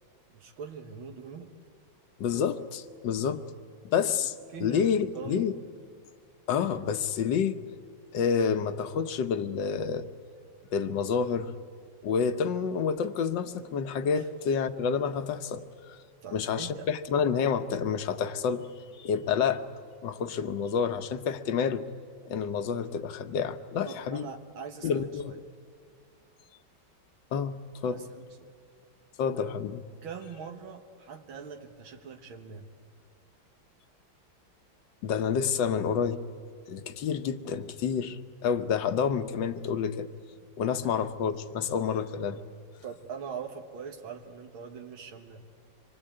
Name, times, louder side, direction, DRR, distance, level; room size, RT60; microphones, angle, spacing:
voice 1, 0.3-1.5 4.0-4.1 4.5-5.5 14.1-14.3 16.2-16.9 23.9-25.4 27.9-28.5 30.0-32.7 40.8-40.9 42.8-45.5, right 6 dB, 85° right, 3 dB, 2.2 m, -42 dB
voice 2, 2.2-3.4 3.9-4.3 4.6-5.6 6.5-7.6 8.1-10.1 10.7-11.5 12.0-16.0 16.3-18.7 19.0-19.6 20.0-21.8 22.3-24.3 24.8-25.4 27.3-28.0 29.2-29.8 35.0-36.2 36.7-40.1 40.6-42.4, left 6 dB, 65° left, 11 dB, 1.6 m, -29 dB
26.0 x 23.5 x 8.8 m, 2.1 s
omnidirectional pair, 2.2 m